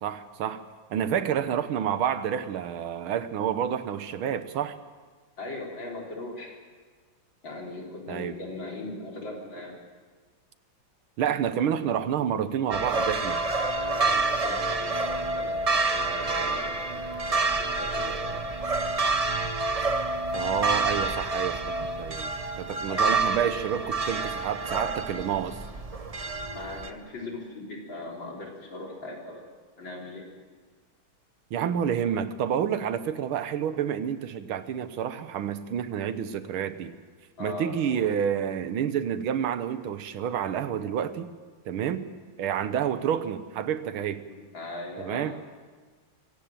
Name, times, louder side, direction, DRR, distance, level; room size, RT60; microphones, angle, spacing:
voice 1, 0.0-4.7 8.1-8.4 11.2-13.4 20.3-25.6 31.5-36.9 37.4-41.3 41.6-42.1 42.4-44.2 45.0-45.4, right 9 dB, 80° right, 12 dB, 1.8 m, -29 dB
voice 2, 5.4-6.5 7.4-9.7 13.8-18.5 22.9-23.2 26.5-29.4 29.8-30.2 37.4-38.1 44.3-45.3, left 2 dB, 65° left, -1 dB, 4.6 m, -39 dB
sound 1, 12.7-26.9, right 3 dB, 40° right, 0.5 m, -28 dB
24.0 x 17.0 x 7.6 m, 1.4 s
omnidirectional pair, 2.3 m